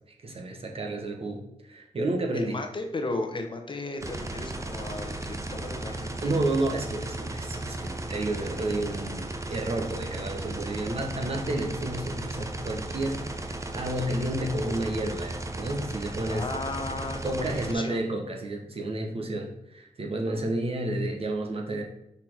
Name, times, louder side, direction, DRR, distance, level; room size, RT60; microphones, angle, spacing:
voice 1, 0.2-2.6 6.2-16.5 17.2-21.8, right 1 dB, 50° right, 2 dB, 1.3 m, -31 dB
voice 2, 2.3-6.4 16.3-18.0, left 2 dB, 40° left, 5 dB, 1.1 m, -35 dB
sound 1, 4.0-17.7, right 2 dB, 25° right, 0.8 m, -35 dB
5.7 x 4.3 x 4.6 m, 0.84 s
cardioid pair, 80°, 13 cm